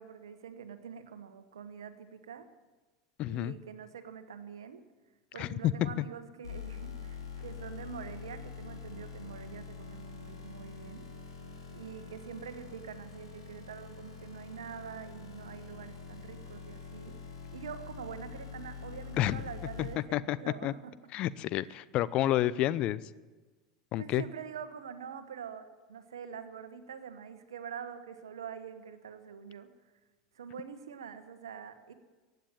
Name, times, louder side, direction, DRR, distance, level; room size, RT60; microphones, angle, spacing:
voice 1, 0.0-2.5 3.3-4.8 5.3-11.1 11.7-17.2 17.5-20.9 21.6-21.8 24.0-29.7 30.3-31.9, right 7 dB, 75° right, 10 dB, 1.3 m, -45 dB
voice 2, 3.2-3.5 5.4-6.0 19.2-19.4 19.8-20.4 20.6-20.7 21.1-23.0 23.9-24.2, left 13 dB, 45° left, 18 dB, 0.6 m, -30 dB
sound 1, 6.4-20.0, left 6 dB, 85° left, 3.3 m, -45 dB
16.0 x 9.3 x 8.8 m, 1.3 s
hypercardioid pair, 80°, 2 cm